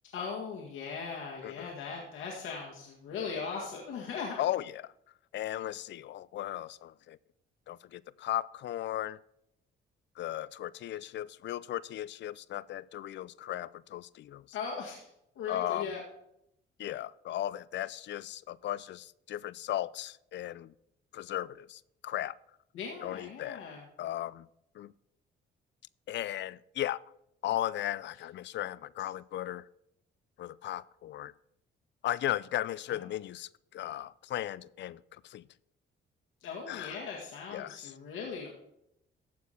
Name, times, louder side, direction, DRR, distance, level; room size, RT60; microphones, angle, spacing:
voice 1, 0.1-4.4 14.5-15.0 15.4-16.0 22.7-23.8 32.9-33.1 36.4-38.5, left 5 dB, 90° left, 1.9 m, -39 dB
voice 2, 4.4-4.8 5.3-7.2 7.7-9.2 10.2-14.4 15.5-15.9 16.8-20.7 21.1-22.4 23.0-23.6 24.0-24.5 24.8-24.9 26.1-27.0 27.4-29.6 30.4-31.3 32.0-35.4 36.7-37.0 37.5-37.9, left 13 dB, 65° left, 0.4 m, -36 dB
14.5 x 4.8 x 5.7 m
cardioid pair, 90°, 20 cm